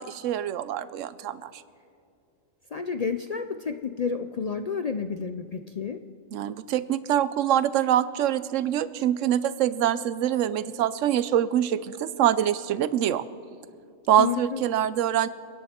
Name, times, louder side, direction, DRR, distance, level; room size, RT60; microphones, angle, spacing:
voice 1, 0.0-1.6 6.3-13.2 14.1-15.3, right 11 dB, 75° right, 16 dB, 1.0 m, -25 dB
voice 2, 2.7-6.0 14.2-14.6, left 6 dB, 70° left, 8 dB, 0.3 m, -30 dB
29.5 x 10.0 x 4.3 m, 2.5 s
omnidirectional pair, 1.3 m